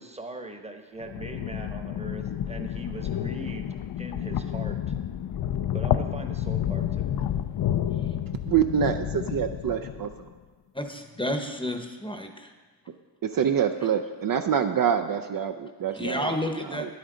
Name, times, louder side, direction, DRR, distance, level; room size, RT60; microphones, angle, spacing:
voice 1, 0.0-4.9 5.7-7.2, right 1 dB, 15° right, 5 dB, 1.0 m, -40 dB
sound 1, 1.0-10.2, left 10 dB, 60° left, 0.5 m, -30 dB
voice 2, 8.5-10.3 13.2-16.3 16.7-16.9, right 8 dB, 50° right, 7 dB, 0.5 m, -26 dB
voice 3, 10.7-12.5 15.9-16.9, left 1 dB, 10° left, 5 dB, 0.8 m, -31 dB
9.9 x 8.6 x 3.8 m, 1.4 s
cardioid pair, 70°, 44 cm